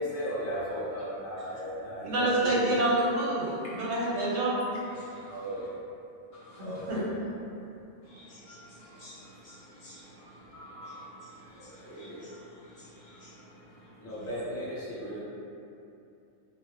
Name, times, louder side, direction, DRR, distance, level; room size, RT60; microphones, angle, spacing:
voice 1, 0.0-2.7 5.3-5.7 6.6-7.1 11.4-12.3 14.0-15.2, equal, 20° left, -9 dB, 0.4 m, -36 dB
voice 2, 2.0-4.6 6.6-7.0, right 1 dB, 80° right, -5 dB, 0.9 m, -27 dB
voice 3, 4.9-5.4 6.3-6.8 8.0-13.9, equal, 50° left, -8 dB, 0.8 m, -50 dB
2.1 x 2.0 x 3.6 m, 2.7 s
omnidirectional pair, 1.2 m